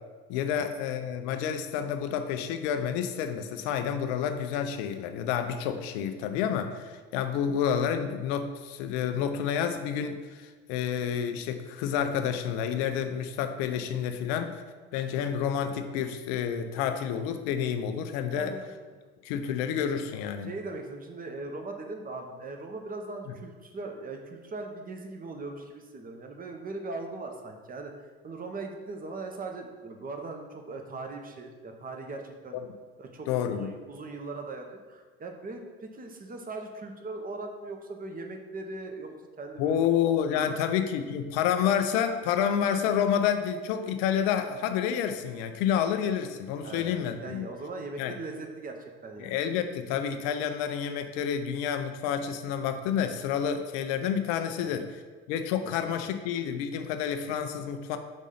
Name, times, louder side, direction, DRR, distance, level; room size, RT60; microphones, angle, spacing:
voice 1, 0.3-14.6 14.9-18.5 19.2-20.5 33.3-33.7 39.6-47.4 48.0-48.1 49.2-54.9 55.3-58.0, left 8 dB, 65° left, 8 dB, 0.7 m, -29 dB
voice 2, 18.3-18.7 20.4-27.9 28.2-32.6 33.0-39.8 40.4-40.7 46.6-49.4 54.6-54.8, right 3 dB, 25° right, 3 dB, 1.0 m, -40 dB
5.2 x 3.6 x 5.5 m, 1.4 s
hypercardioid pair, 70°, 32 cm